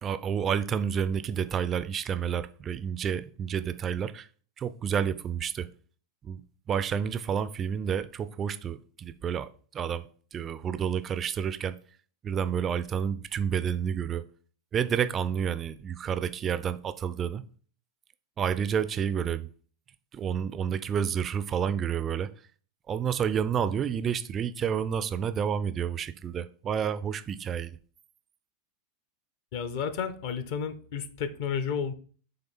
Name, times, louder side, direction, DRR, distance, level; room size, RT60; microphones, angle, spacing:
voice 1, 0.0-4.3 4.6-5.7 6.2-6.4 6.7-11.8 12.2-14.2 14.7-17.4 18.4-19.5 20.1-22.3 22.9-27.8, right 8 dB, 25° right, 0.4 m, -30 dB
voice 2, 29.5-31.9, left 7 dB, 50° left, 0.7 m, -32 dB
7.9 x 3.3 x 4.3 m
figure-of-eight pair, 90°, 0 cm